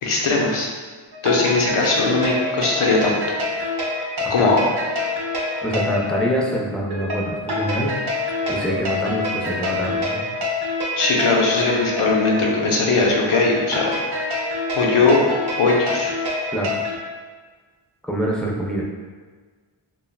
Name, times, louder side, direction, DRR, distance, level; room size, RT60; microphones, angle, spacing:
voice 1, 0.0-0.7 1.2-3.2 4.3-4.6 11.0-13.9 14.7-15.2 15.6-16.1, left 3 dB, 85° left, -1 dB, 0.6 m, -19 dB
sound 1, 1.1-17.0, left 2 dB, 55° right, 0.6 m, -26 dB
voice 2, 5.6-7.9 8.5-10.2 16.5-16.7 18.0-18.8, right 1 dB, ahead, -4 dB, 0.4 m, -25 dB
3.1 x 2.2 x 2.2 m, 1.5 s
wide cardioid pair, 60°, 49 cm